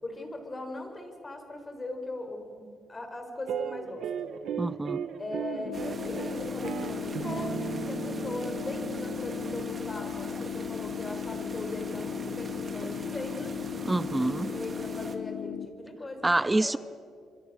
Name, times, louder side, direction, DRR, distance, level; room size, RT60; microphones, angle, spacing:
voice 1, 0.0-4.1 5.2-13.6 14.5-16.8, left 2 dB, 25° left, 5 dB, 4.9 m, -39 dB
sound 1, 3.5-10.0, right 8 dB, 70° right, 1.5 m, -37 dB
voice 2, 4.6-5.1 13.9-14.5 16.2-16.8, right 2 dB, 15° right, 17 dB, 0.5 m, -26 dB
sound 2, 5.6-15.7, left 10 dB, 65° left, 0.9 m, -36 dB
sound 3, 5.7-15.2, right 3 dB, 40° right, 2.7 m, -42 dB
27.5 x 25.0 x 6.5 m, 2.3 s
cardioid pair, 90°, 0 cm